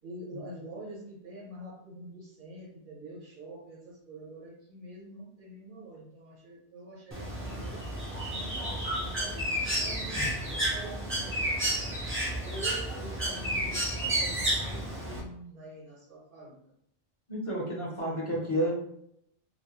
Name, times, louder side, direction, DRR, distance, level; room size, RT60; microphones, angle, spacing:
voice 1, 0.0-7.8 8.3-9.5 9.8-12.1 12.4-16.5 18.4-18.7, right 1 dB, 55° right, -4 dB, 1.1 m, -46 dB
Bird, 7.1-15.2, right 1 dB, 15° right, 0.4 m, -31 dB
voice 2, 17.3-18.7, equal, 35° left, -6 dB, 0.6 m, -31 dB
2.4 x 2.1 x 2.9 m, 0.74 s
omnidirectional pair, 1.0 m